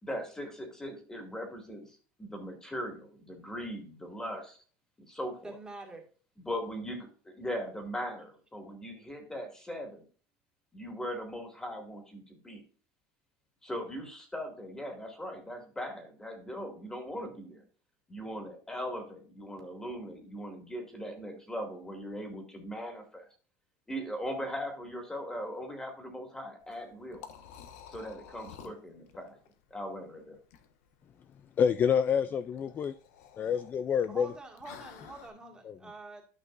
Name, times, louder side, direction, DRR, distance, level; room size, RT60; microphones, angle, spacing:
voice 1, 0.0-4.6 5.0-5.5 6.5-10.0 10.7-12.6 13.6-17.6 18.1-23.3 23.9-27.2 27.9-29.4 29.7-30.4, equal, 10° left, 2.2 m, -39 dB
voice 2, 5.4-6.1 34.1-36.2, right 2 dB, 10° right, 1.9 m, -46 dB
Liquid, 26.6-35.3, left 8 dB, 85° left, 1.3 m, -52 dB
voice 3, 31.6-32.9 33.4-34.3, left 7 dB, 25° left, 0.4 m, -27 dB
12.5 x 5.8 x 2.5 m
cardioid pair, 155°, 8 cm